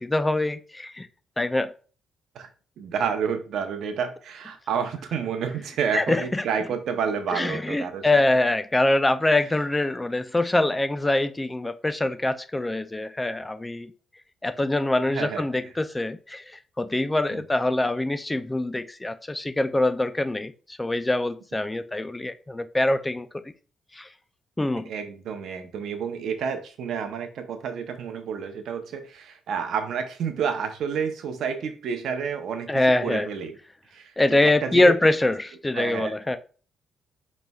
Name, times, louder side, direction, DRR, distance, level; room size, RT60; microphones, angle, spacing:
voice 1, 0.0-1.1 1.4-1.7 5.9-6.4 7.3-13.9 14.4-16.4 16.8-20.5 20.8-23.3 24.0-24.1 24.6-24.8 32.7-33.3 34.2-36.4, left 2 dB, 15° left, 0.3 m, -24 dB
voice 2, 2.8-8.2 15.1-15.7 17.3-17.4 24.9-33.6 33.9-34.9 35.7-36.1, right 6 dB, 70° right, 0.7 m, -30 dB
5.1 x 3.1 x 2.3 m
cardioid pair, 90°, 0 cm